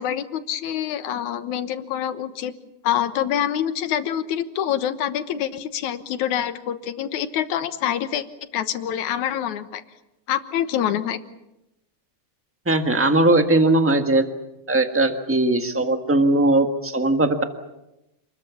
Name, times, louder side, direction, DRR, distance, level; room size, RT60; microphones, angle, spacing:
voice 1, 0.0-2.5 2.8-8.3 8.5-9.8 10.3-11.2, left 10 dB, 80° left, 10 dB, 2.6 m, -26 dB
voice 2, 12.6-14.2 14.7-17.4, right 2 dB, 15° right, 6 dB, 0.5 m, -19 dB
28.5 x 21.0 x 7.2 m, 0.92 s
omnidirectional pair, 3.4 m